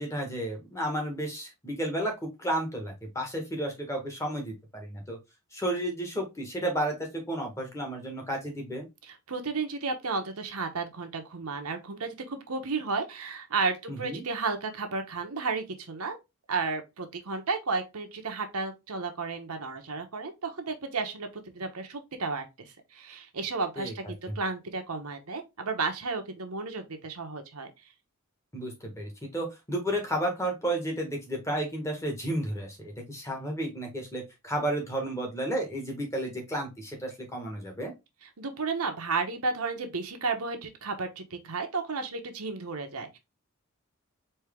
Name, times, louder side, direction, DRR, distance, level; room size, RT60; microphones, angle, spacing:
voice 1, 0.0-5.2 5.5-8.9 13.9-14.2 23.8-23.9 24.3-24.4 28.5-37.9, right 1 dB, 15° left, 1.4 m, -32 dB
voice 2, 9.0-16.2 16.5-27.7 38.2-43.2, right 4 dB, 90° right, 1.0 m, -33 dB
4.5 x 2.8 x 3.5 m
head